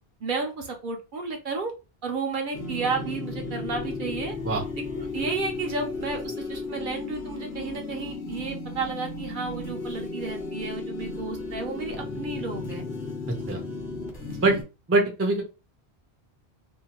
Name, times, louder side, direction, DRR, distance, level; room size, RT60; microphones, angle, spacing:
voice 1, 0.2-1.7 2.0-4.4 4.9-12.9 14.3-14.6, right 4 dB, 60° right, 3 dB, 0.6 m, -32 dB
sound 1, 2.5-14.6, left 3 dB, 55° left, 0.9 m, -34 dB
voice 2, 14.9-15.4, right 2 dB, 20° right, 3 dB, 0.4 m, -22 dB
2.6 x 2.1 x 2.8 m, 0.30 s
omnidirectional pair, 1.1 m